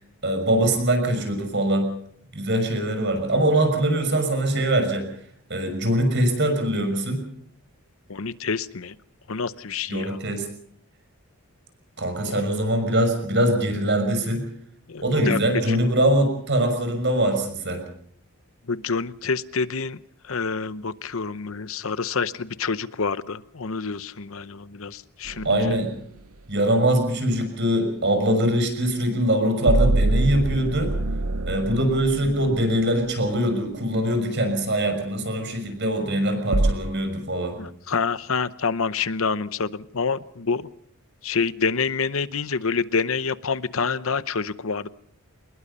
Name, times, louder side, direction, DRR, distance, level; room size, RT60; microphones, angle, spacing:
voice 1, 0.2-1.9 2.3-5.1 5.5-7.2 9.9-10.5 12.0-14.4 15.0-17.8 25.4-25.9 26.5-30.9 31.5-37.6, right 1 dB, 50° right, 7 dB, 6.1 m, -22 dB
voice 2, 8.1-8.9 9.3-10.2 12.3-12.4 14.9-15.4 15.7-15.8 18.7-20.0 20.3-25.7 37.6-40.6 41.2-44.9, left 5 dB, 65° left, 15 dB, 0.8 m, -27 dB
sound 1, 25.3-25.8 29.7-33.1 36.5-36.7, right 2 dB, 75° right, 1.0 m, -24 dB
25.0 x 21.0 x 5.5 m, 0.63 s
head